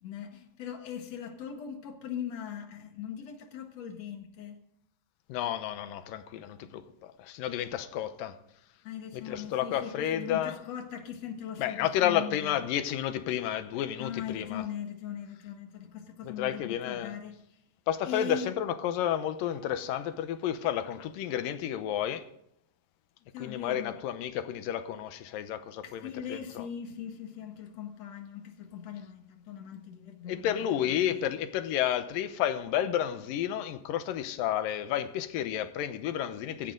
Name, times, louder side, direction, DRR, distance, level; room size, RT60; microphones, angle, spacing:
voice 1, 0.0-4.6 8.8-12.6 14.0-17.4 18.0-18.5 23.3-24.0 25.8-31.2, left 8 dB, 55° left, 2.4 m, -40 dB
voice 2, 5.3-8.4 9.1-10.6 11.6-14.6 16.2-17.2 17.9-22.2 23.4-26.7 30.3-36.7, left 10 dB, 75° left, 2.5 m, -31 dB
17.0 x 15.0 x 3.8 m
omnidirectional pair, 4.2 m